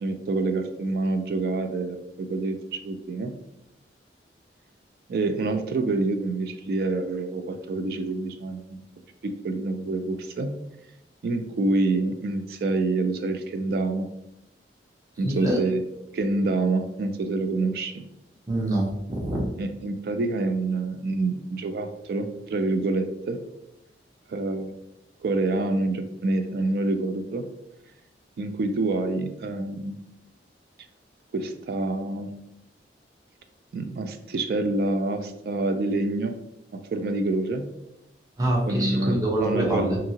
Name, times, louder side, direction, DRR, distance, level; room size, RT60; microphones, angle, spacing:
voice 1, 0.0-3.3 5.1-8.8 9.2-10.5 11.2-14.1 15.2-15.8 16.1-18.0 19.6-23.4 24.3-24.7 25.2-27.4 28.4-30.0 31.3-32.3 33.7-36.3 36.7-37.7 38.7-39.9, right 2 dB, 55° right, 8 dB, 0.3 m, -27 dB
voice 2, 15.2-15.6 18.5-19.5 38.4-40.0, right 1 dB, 20° right, -3 dB, 0.6 m, -25 dB
2.8 x 2.6 x 2.7 m, 0.87 s
head